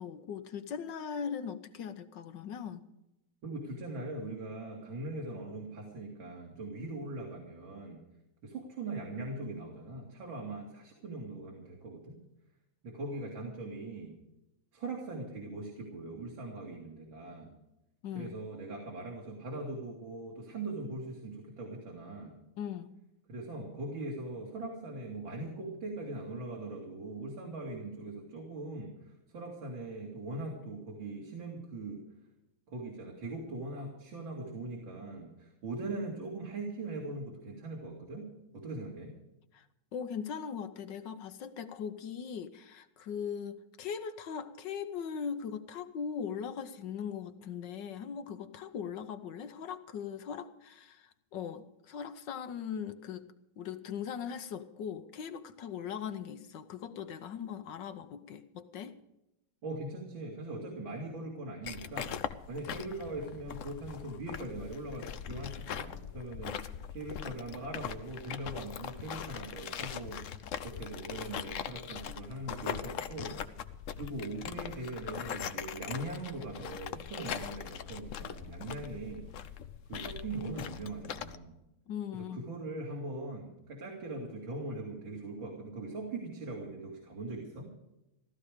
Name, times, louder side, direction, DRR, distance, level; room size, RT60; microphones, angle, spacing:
voice 1, 0.0-2.8 18.0-18.3 22.6-22.9 39.5-39.6 39.9-53.2 53.6-58.9 81.9-82.5, left 7 dB, 65° left, 10 dB, 1.4 m, -40 dB
voice 2, 3.4-8.0 8.4-12.2 12.8-14.2 14.7-17.5 18.1-22.4 23.3-32.0 32.7-39.1 59.6-62.1 62.5-66.6 66.9-70.4 70.6-73.4 73.9-79.2 79.9-81.6 82.1-87.7, right 2 dB, 65° right, -1 dB, 3.2 m, -41 dB
sound 1, 61.6-81.4, left 8 dB, 90° left, 0.6 m, -41 dB
15.5 x 13.5 x 5.0 m, 0.91 s
omnidirectional pair, 2.3 m